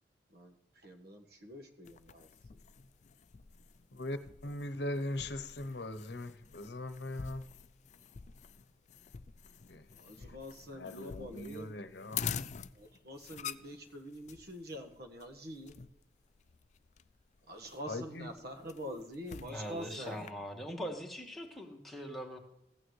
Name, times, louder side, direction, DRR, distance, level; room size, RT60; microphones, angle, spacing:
voice 1, 0.8-2.3 9.9-11.7 12.7-15.7 17.5-20.2, equal, 60° right, 4 dB, 1.5 m, -45 dB
sound 1, 1.8-20.3, left 7 dB, 40° left, 0.4 m, -47 dB
voice 2, 3.9-7.5 9.7-9.9 10.2-10.4 10.7-12.3 17.9-18.3, left 1 dB, 70° left, 10 dB, 0.9 m, -40 dB
voice 3, 19.4-22.4, equal, ahead, 0 dB, 1.6 m, -42 dB
15.5 x 9.0 x 3.2 m, 0.84 s
head